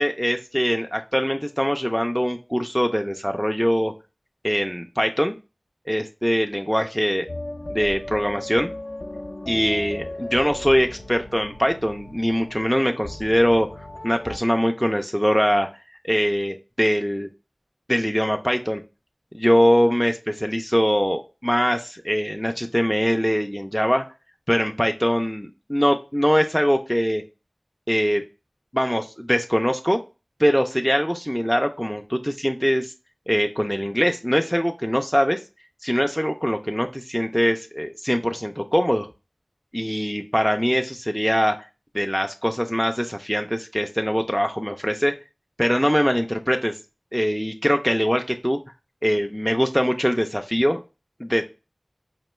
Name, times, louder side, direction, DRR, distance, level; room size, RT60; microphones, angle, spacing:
voice 1, 0.0-3.9 4.4-5.4 5.9-7.3 7.7-8.7 9.5-13.7 14.0-15.7 16.0-17.3 17.9-18.8 19.3-24.1 24.5-27.2 27.9-28.2 28.7-30.0 30.4-32.9 33.3-35.4 35.8-39.1 39.7-41.6 41.9-45.2 45.6-46.8 47.1-48.6 49.0-50.8 51.2-51.5, equal, 5° left, 4 dB, 0.3 m, -22 dB
sound 1, 7.3-14.4, left 1 dB, 65° left, 0.5 m, -36 dB
4.9 x 2.2 x 3.0 m, 0.30 s
wide cardioid pair, 45°, 0 cm